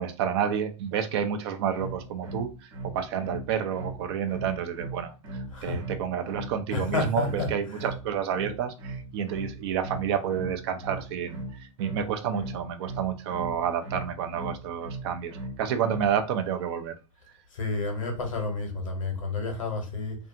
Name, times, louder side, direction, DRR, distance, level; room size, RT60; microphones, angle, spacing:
voice 1, 0.0-16.9, right 8 dB, 50° right, 0.5 m, -30 dB
sound 1, 1.7-16.2, right 2 dB, 65° right, 1.0 m, -38 dB
voice 2, 5.5-5.8 6.7-7.8 17.5-20.2, left 3 dB, 70° left, 1.1 m, -30 dB
2.6 x 2.3 x 2.7 m
figure-of-eight pair, 95°, 17 cm